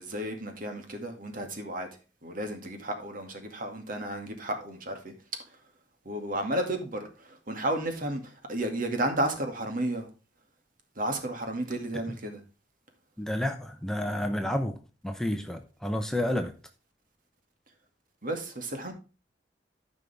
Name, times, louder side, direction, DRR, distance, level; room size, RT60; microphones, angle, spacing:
voice 1, 0.0-1.9 2.2-5.1 6.1-10.1 11.0-12.4 18.2-18.9, right 1 dB, 50° right, 2.1 m, -32 dB
voice 2, 13.2-14.8 15.0-16.5, left 1 dB, 5° left, 0.8 m, -30 dB
13.5 x 5.4 x 3.4 m
head